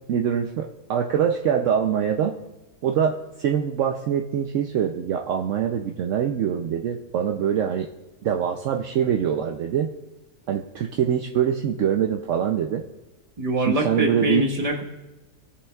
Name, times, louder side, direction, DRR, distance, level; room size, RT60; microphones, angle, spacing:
voice 1, 0.1-2.4 2.8-7.9 8.2-9.9 10.5-12.8 13.7-14.4, right 8 dB, 70° right, 3 dB, 0.9 m, -24 dB
voice 2, 13.4-14.8, right 1 dB, 30° right, 0 dB, 1.3 m, -24 dB
18.0 x 7.0 x 2.3 m, 1.1 s
omnidirectional pair, 1.4 m